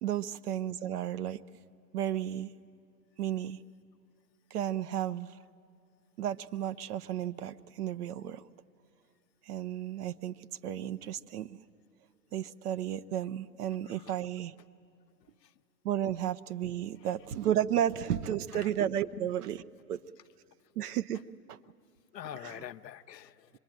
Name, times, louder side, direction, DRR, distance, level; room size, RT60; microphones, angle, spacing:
voice 1, 0.0-1.4 1.9-2.5 3.2-3.6 4.5-5.4 6.2-8.4 9.5-11.6 12.3-14.5 15.8-19.6 19.9-20.0 20.8-21.2 21.5-21.6 22.2-22.7, right 11 dB, 65° right, 14 dB, 0.9 m, -33 dB
voice 2, 22.1-23.6, left 11 dB, 80° left, 10 dB, 0.8 m, -45 dB
25.5 x 22.0 x 9.1 m, 2.5 s
hypercardioid pair, 110°, 49 cm